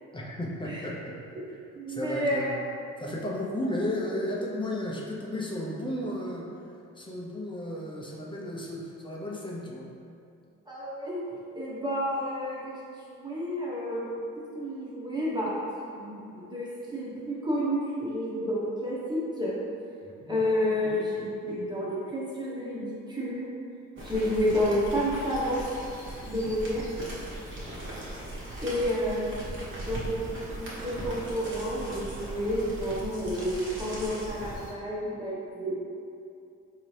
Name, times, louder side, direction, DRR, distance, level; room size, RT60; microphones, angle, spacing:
voice 1, 0.1-1.1 1.5-1.6 1.9-2.6 3.0-6.5 6.9-9.9 20.0-20.4 27.4-27.8, left 1 dB, 15° left, -3 dB, 0.6 m, -34 dB
voice 2, 1.7-2.5 10.7-11.2 11.5-14.1 14.5-15.5 15.9-19.5 20.3-23.4 24.0-25.6 26.2-26.8 28.6-30.2 30.6-35.8, equal, 15° right, -7 dB, 0.9 m, -30 dB
sound 1, 23.9-34.7, right 1 dB, 40° right, 1.1 m, -39 dB
3.9 x 2.8 x 3.1 m, 2.5 s
cardioid pair, 90°, 30 cm